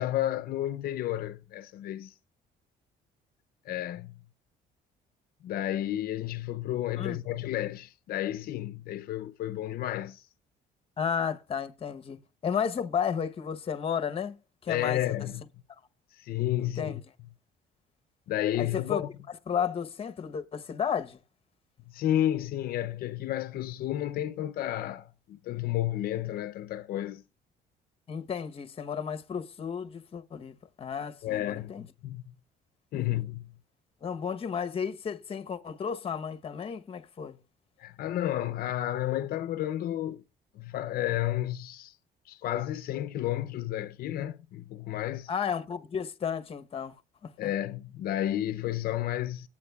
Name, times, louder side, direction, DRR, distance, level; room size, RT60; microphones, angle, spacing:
voice 1, 0.0-2.2 3.6-4.2 5.4-10.3 14.7-15.4 16.1-17.0 18.3-19.1 21.9-27.2 31.2-32.3 32.9-33.5 37.8-40.2 40.5-42.0 42.2-45.3 47.4-49.5, left 13 dB, 65° left, 0.5 m, -31 dB
voice 2, 11.0-14.3 14.6-15.1 16.6-17.0 18.6-19.0 19.5-21.2 28.1-31.8 32.9-33.2 34.0-37.4 45.3-46.9 47.2-47.5, left 7 dB, 35° left, 0.8 m, -33 dB
18.0 x 8.6 x 2.3 m
cardioid pair, 110°, 17 cm